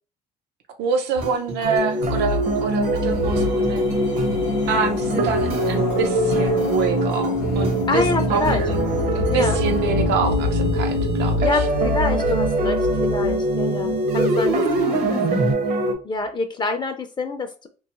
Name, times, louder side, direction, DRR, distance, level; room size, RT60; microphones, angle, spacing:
voice 1, 0.8-3.8 4.7-8.8 9.1-11.7, right 5 dB, 85° right, 0.6 m, -26 dB
sound 1, 1.2-9.8 10.2-15.5, right 1 dB, 70° right, 0.9 m, -30 dB
sound 2, 1.6-15.9, right 1 dB, 45° right, 0.6 m, -23 dB
sound 3, 2.1-14.5 14.7-14.8, left 5 dB, 80° left, 0.5 m, -28 dB
voice 2, 7.9-8.6 9.3-9.6 11.4-15.5 16.0-17.7, left 3 dB, 25° left, 0.4 m, -27 dB
2.6 x 2.3 x 2.9 m
cardioid pair, 110°, 17 cm